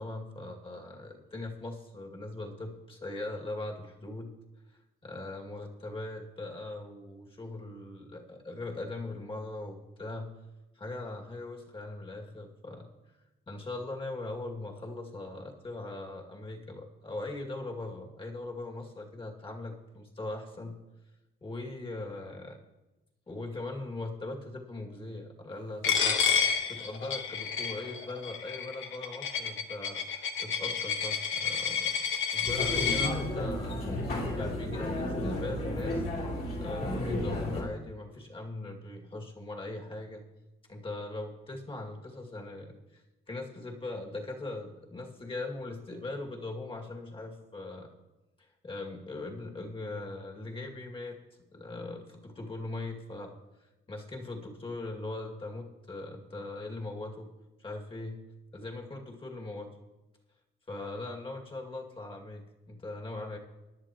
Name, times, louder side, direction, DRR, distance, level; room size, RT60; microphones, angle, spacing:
voice 1, 0.0-4.3 5.0-10.3 10.8-12.9 13.5-20.8 21.4-22.6 23.3-26.2 26.7-33.8 34.2-36.0 36.6-40.2 40.7-47.9 48.4-51.2 51.5-53.3 53.9-57.3 57.6-58.2 58.5-59.7 60.7-63.4, left 2 dB, 25° left, 0 dB, 2.3 m, -40 dB
Coin (dropping), 25.8-33.1, left 7 dB, 75° left, 1.2 m, -30 dB
sound 1, 32.5-37.6, left 1 dB, 50° left, 3.4 m, -33 dB
18.5 x 11.0 x 3.0 m, 1.0 s
cardioid pair, 90°, 20 cm